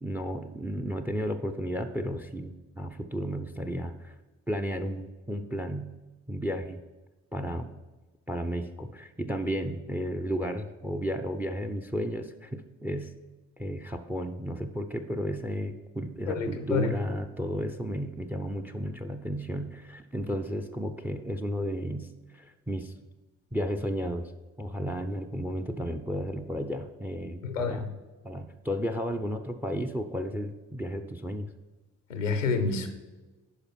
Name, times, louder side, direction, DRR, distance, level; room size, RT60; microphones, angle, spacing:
voice 1, 0.0-4.1 4.5-5.9 6.3-6.8 7.3-7.7 8.3-13.1 13.6-22.1 22.3-22.9 23.5-24.3 24.6-27.9 28.2-31.5, equal, 5° right, 9 dB, 0.6 m, -33 dB
voice 2, 16.3-16.9 27.4-27.9 32.1-32.9, left 4 dB, 90° left, 8 dB, 0.7 m, -28 dB
10.5 x 5.0 x 4.4 m, 1.2 s
figure-of-eight pair, 45°, 37 cm